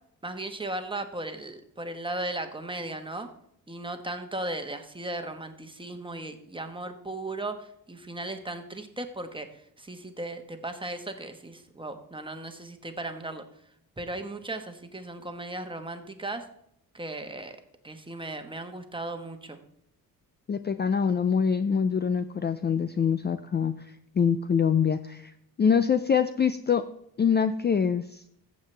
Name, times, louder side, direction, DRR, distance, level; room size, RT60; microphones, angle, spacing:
voice 1, 0.2-3.3 3.7-13.4 14.0-16.5 16.9-17.6 17.8-19.6, right 2 dB, 15° right, 6 dB, 1.3 m, -36 dB
voice 2, 20.5-23.7 24.2-25.3 25.6-26.8 27.2-28.2, left 6 dB, 30° left, 11 dB, 0.4 m, -24 dB
14.5 x 7.4 x 3.3 m, 0.72 s
cardioid pair, 95°, 37 cm